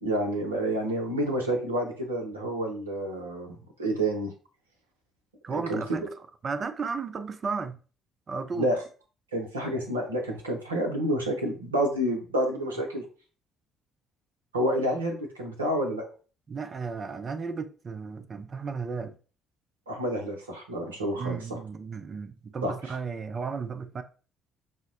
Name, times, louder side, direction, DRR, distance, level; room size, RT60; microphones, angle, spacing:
voice 1, 0.0-4.3 5.5-6.0 8.6-8.8 9.3-13.0 14.5-16.0 19.9-21.6 22.6-22.9, right 1 dB, 80° right, 0.6 m, -29 dB
voice 2, 5.4-6.0 6.4-7.8 8.3-8.7 16.5-19.1 21.2-24.0, right 5 dB, 40° right, 0.4 m, -34 dB
5.5 x 2.0 x 2.4 m
figure-of-eight pair, 45°, 0 cm